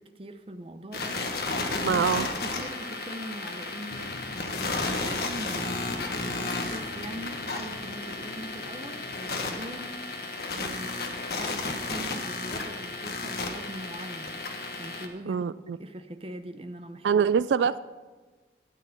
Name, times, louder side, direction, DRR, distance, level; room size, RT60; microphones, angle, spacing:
voice 1, 0.0-10.0 10.5-14.4 14.8-15.5 15.8-17.3, right 1 dB, 30° right, 8 dB, 0.7 m, -42 dB
sound 1, 0.9-15.1, left 3 dB, 60° left, 1.3 m, -33 dB
voice 2, 1.8-2.3 15.3-15.8 17.0-17.8, right 7 dB, 85° right, 16 dB, 0.3 m, -24 dB
sound 2, 3.9-10.3, left 2 dB, 85° left, 0.7 m, -45 dB
12.5 x 9.3 x 5.7 m, 1.3 s
head